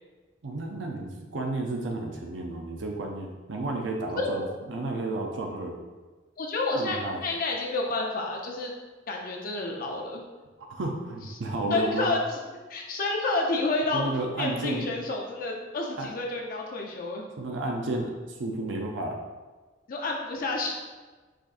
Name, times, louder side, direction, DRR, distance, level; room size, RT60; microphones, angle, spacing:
voice 1, 0.4-5.8 6.8-7.2 10.7-12.1 13.9-14.9 16.0-16.1 17.4-19.2, right 2 dB, 70° right, 1 dB, 0.6 m, -32 dB
voice 2, 4.1-4.5 6.4-8.7 9.1-10.2 11.7-12.4 12.7-14.0 14.4-17.3 19.9-20.7, left 2 dB, 50° left, 0 dB, 0.5 m, -29 dB
5.0 x 4.0 x 2.5 m, 1.3 s
head